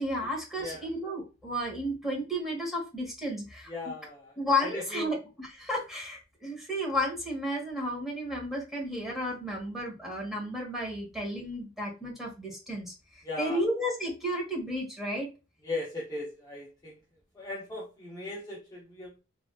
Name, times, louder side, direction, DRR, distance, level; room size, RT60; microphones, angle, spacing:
voice 1, 0.0-3.7 4.4-15.3, equal, ahead, -2 dB, 1.2 m, -33 dB
voice 2, 0.6-0.9 3.7-4.3 4.6-5.1 13.2-13.6 15.6-17.0 17.3-19.1, left 2 dB, 20° left, -5 dB, 0.7 m, -38 dB
3.3 x 2.7 x 2.3 m, 0.30 s
head